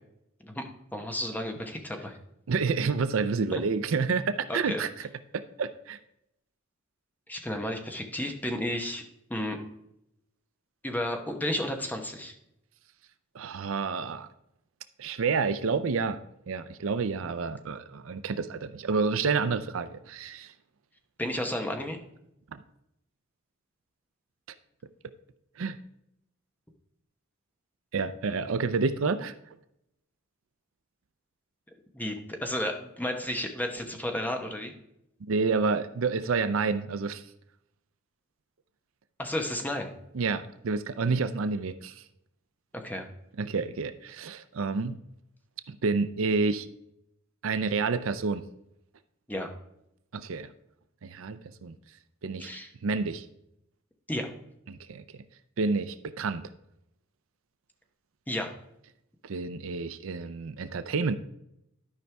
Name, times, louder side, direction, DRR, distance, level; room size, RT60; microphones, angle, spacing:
voice 1, 0.9-2.2 3.5-3.6 4.5-4.8 7.3-9.0 9.3-9.6 10.8-12.3 21.2-22.0 31.9-34.7 39.2-39.9 42.7-43.1 49.3-49.5 52.4-52.7 54.1-54.3 58.3-58.5, left 1 dB, 10° left, 4 dB, 1.0 m, -32 dB
voice 2, 2.5-4.9 5.3-6.0 13.3-14.3 15.0-16.2 16.5-20.5 22.5-22.6 25.6-25.8 27.9-29.3 35.3-37.2 40.1-41.9 43.4-45.0 45.7-46.7 47.4-48.4 50.1-50.5 51.0-51.8 52.2-52.5 52.8-53.3 54.7-55.0 55.6-56.4 59.2-61.1, right 4 dB, 70° right, 12 dB, 0.5 m, -29 dB
12.0 x 5.4 x 3.4 m, 0.81 s
head